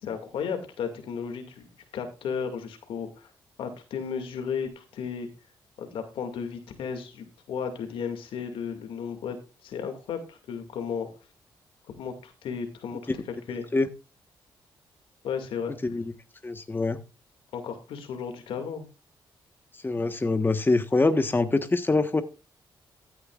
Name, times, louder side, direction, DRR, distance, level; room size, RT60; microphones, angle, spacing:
voice 1, 0.0-1.7 1.9-3.3 3.6-5.3 5.8-9.4 9.6-11.1 12.0-13.0 13.3-13.7 15.2-15.7 17.5-18.9, left 6 dB, 80° left, 6 dB, 2.2 m, -34 dB
voice 2, 15.8-16.1 16.4-17.0 19.8-22.2, left 3 dB, 25° left, 9 dB, 1.3 m, -24 dB
15.0 x 9.6 x 2.4 m, 0.32 s
supercardioid pair, 60°, 9 cm